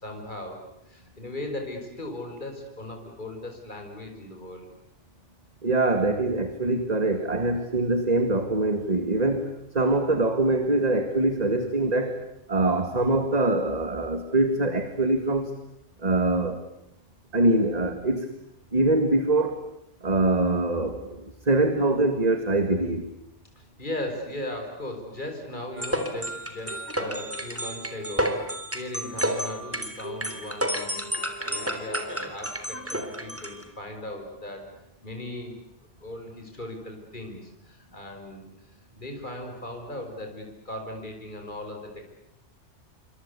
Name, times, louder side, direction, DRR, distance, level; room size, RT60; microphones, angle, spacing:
voice 1, 0.0-4.7 23.6-34.7 35.0-35.5 36.0-38.4 39.0-42.1, left 1 dB, 40° left, 3 dB, 5.4 m, -38 dB
voice 2, 5.6-12.2 12.5-15.5 16.0-16.6 17.3-18.3 18.7-19.6 20.0-23.1 30.3-30.4, right 2 dB, 35° right, 8 dB, 2.1 m, -24 dB
sound 1, 25.8-33.6, equal, 10° right, 3.4 m, -31 dB
28.5 x 25.5 x 8.3 m, 0.81 s
omnidirectional pair, 1.2 m